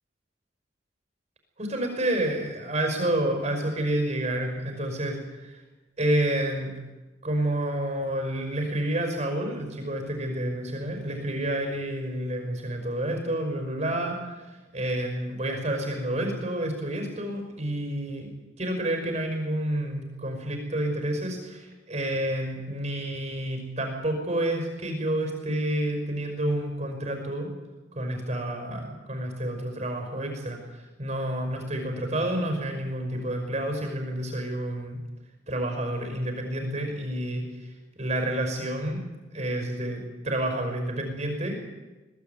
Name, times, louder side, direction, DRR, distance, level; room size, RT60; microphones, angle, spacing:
voice 1, 1.6-5.6 6.0-6.7 7.2-18.3 18.6-27.5 27.9-35.0 35.5-37.7 38.0-39.0 39.3-41.6, right 1 dB, 40° right, 4 dB, 5.6 m, -29 dB
22.5 x 17.0 x 9.4 m, 1.2 s
head